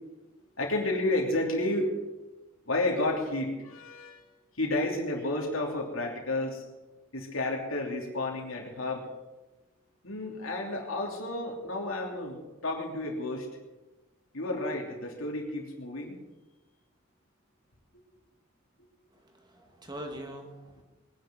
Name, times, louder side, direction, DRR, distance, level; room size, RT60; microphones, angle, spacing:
voice 1, 0.6-1.9 2.7-4.2 4.6-6.6 7.1-9.0 10.0-13.5 14.3-16.1, left 2 dB, 85° left, 0 dB, 2.9 m, -31 dB
voice 2, 19.1-20.8, right 1 dB, 20° right, 2 dB, 2.2 m, -43 dB
21.0 x 10.5 x 6.2 m, 1.1 s
head